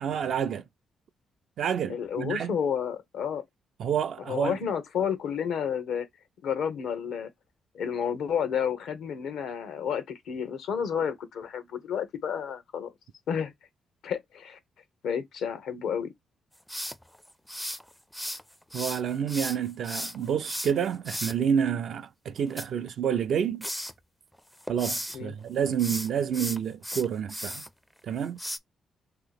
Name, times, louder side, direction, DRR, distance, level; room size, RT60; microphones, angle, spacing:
voice 1, 0.0-0.6 1.6-2.5 3.8-4.6 18.7-23.6 24.7-27.6 28.1-28.4, right 8 dB, 70° right, 0.4 m, -28 dB
voice 2, 1.9-3.4 4.3-6.1 6.4-7.3 7.7-12.9 13.3-13.5 14.0-14.6 15.0-16.1 25.1-25.3, left 7 dB, 85° left, 0.8 m, -31 dB
sound 1, 16.7-18.4 18.7-21.4 22.4-23.3 23.6-23.9 24.4-25.2 25.7-27.7 28.4-28.6, equal, 5° left, 0.4 m, -35 dB
2.9 x 2.8 x 3.9 m
cardioid pair, 75°, 0 cm